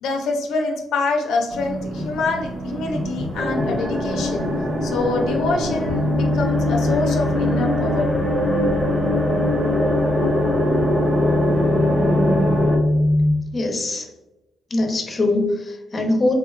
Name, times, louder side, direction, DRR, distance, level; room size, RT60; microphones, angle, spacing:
voice 1, 0.0-4.5 4.8-8.1, left 3 dB, 85° left, 2 dB, 0.4 m, -25 dB
sound 1, 1.5-12.7, right 1 dB, 50° right, 1.1 m, -29 dB
sound 2, 3.3-12.8, left 1 dB, 5° left, 1.0 m, -23 dB
sound 3, 5.8-13.3, left 1 dB, 75° right, 0.4 m, -23 dB
voice 2, 13.5-14.0 14.7-16.3, left 2 dB, 30° left, 3 dB, 0.6 m, -22 dB
3.5 x 2.1 x 2.3 m, 0.99 s
cardioid pair, 90°, 0 cm